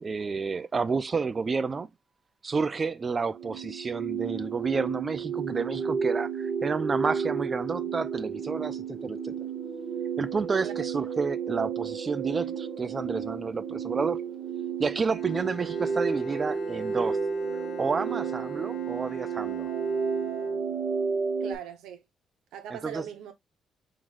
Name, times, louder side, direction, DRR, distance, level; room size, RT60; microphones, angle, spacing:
voice 1, 0.0-1.9 2.4-9.3 10.2-14.2 14.8-17.2 17.8-19.7 22.7-23.0, right 4 dB, 35° right, 0.5 m, -30 dB
sound 1, 3.3-21.6, right 6 dB, 65° right, 1.6 m, -32 dB
Bowed string instrument, 14.9-21.1, left 6 dB, 75° left, 1.1 m, -48 dB
voice 2, 21.4-22.0 22.5-23.3, right 9 dB, 90° right, 1.0 m, -40 dB
4.8 x 3.9 x 2.4 m
cardioid pair, 90°, 0 cm